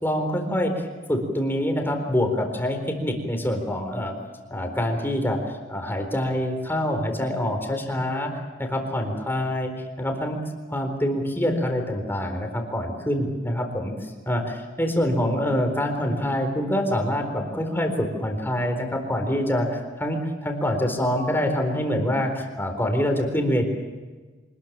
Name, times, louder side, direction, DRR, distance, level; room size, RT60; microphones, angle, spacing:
voice 1, 0.0-4.1 4.5-8.3 8.6-9.7 10.0-10.4 10.7-23.7, equal, 10° left, 4 dB, 4.1 m, -25 dB
25.5 x 21.0 x 7.5 m, 1.3 s
head